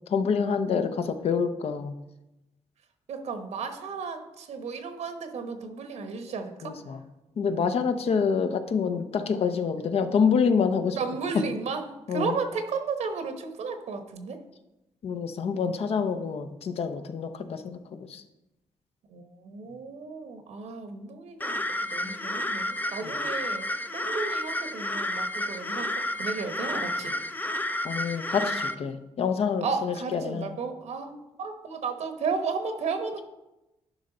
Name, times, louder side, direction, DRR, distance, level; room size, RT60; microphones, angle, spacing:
voice 1, 0.1-1.9 6.6-7.0 7.4-11.0 12.1-12.3 15.0-18.2 22.0-22.1 27.8-30.5, left 6 dB, 60° left, 8 dB, 0.8 m, -27 dB
voice 2, 3.1-6.7 11.0-14.4 19.1-21.6 21.9-23.7 23.9-27.1 29.6-33.2, right 5 dB, 75° right, 7 dB, 1.1 m, -33 dB
sound 1, 21.4-28.7, left 1 dB, 15° left, 0.5 m, -31 dB
10.0 x 5.5 x 3.9 m, 0.96 s
cardioid pair, 90°, 12 cm